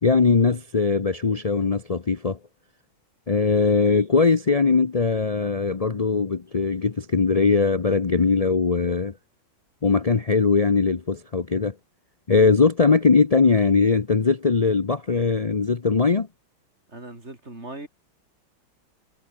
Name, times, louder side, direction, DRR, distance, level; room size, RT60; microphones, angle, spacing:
voice 1, 0.0-2.4 3.3-9.1 9.8-11.7 12.3-16.3, left 4 dB, 65° left, 0.3 m, -20 dB
voice 2, 16.9-17.9, right 2 dB, 30° right, 5.1 m, -39 dB
omnidirectional pair, 2.2 m